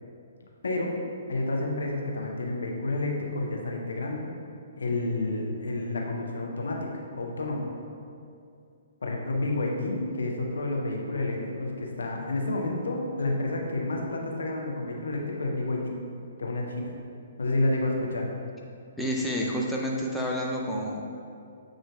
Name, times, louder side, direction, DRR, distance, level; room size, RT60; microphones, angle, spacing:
voice 1, 0.6-0.9 1.3-4.3 4.8-7.7 9.0-15.9 16.4-16.9 17.4-18.3, left 2 dB, 75° left, 0 dB, 0.6 m, -30 dB
voice 2, 19.0-21.0, equal, 5° left, -3 dB, 0.4 m, -29 dB
7.0 x 2.5 x 2.2 m, 2.4 s
figure-of-eight pair, 125°, 0 cm